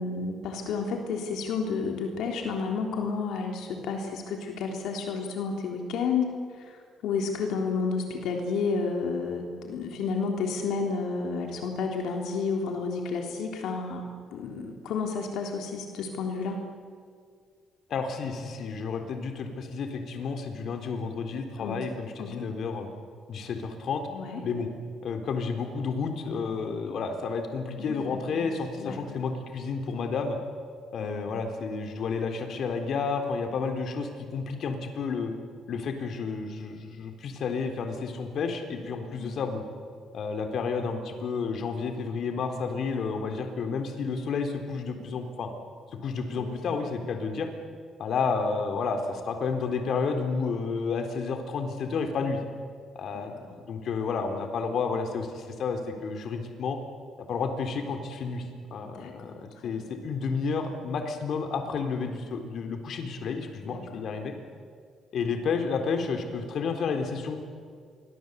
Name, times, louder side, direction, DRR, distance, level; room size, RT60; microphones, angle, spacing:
voice 1, 0.0-16.6 21.6-21.8 22.2-22.4 24.1-24.4 27.8-29.2 31.0-31.4 39.1-39.4 46.3-46.9 53.1-53.3 58.9-59.8 63.6-64.0, left 4 dB, 85° left, 2 dB, 3.5 m, -31 dB
voice 2, 17.9-22.9 23.3-24.1 24.4-24.7 25.0-30.4 30.9-35.3 35.7-39.6 40.1-45.5 46.0-47.5 48.0-52.4 53.0-56.8 57.2-58.4 58.7-64.3 65.1-67.4, left 5 dB, 65° left, 5 dB, 3.9 m, -31 dB
28.0 x 23.5 x 8.3 m, 2.1 s
cardioid pair, 90°, 0 cm